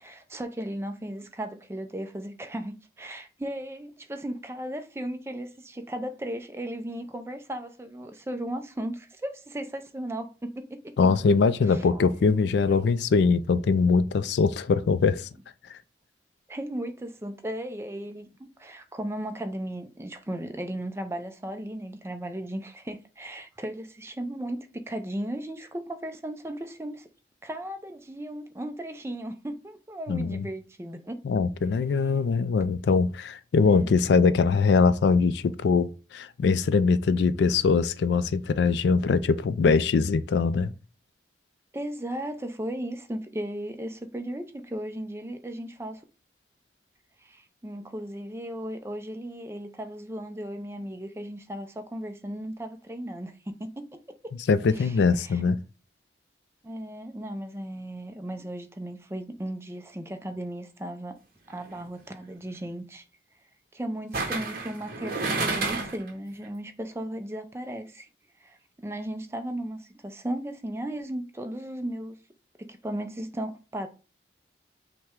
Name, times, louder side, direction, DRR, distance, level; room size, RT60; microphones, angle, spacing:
voice 1, 0.0-11.0 11.7-12.0 16.5-27.1 27.4-31.2 33.6-33.9 41.7-46.0 47.2-54.3 54.7-55.4 56.6-61.2 61.5-63.0 63.7-68.1 68.4-72.2 72.6-73.9, right 1 dB, 15° right, 0.4 m, -36 dB
voice 2, 11.0-15.3 30.1-30.5 31.2-40.7 54.5-55.6, left 4 dB, 75° left, 0.3 m, -22 dB
sound 1, 61.5-61.8 64.1-66.1 66.4-66.5, right 3 dB, 50° right, 1.0 m, -30 dB
5.6 x 2.1 x 3.6 m
head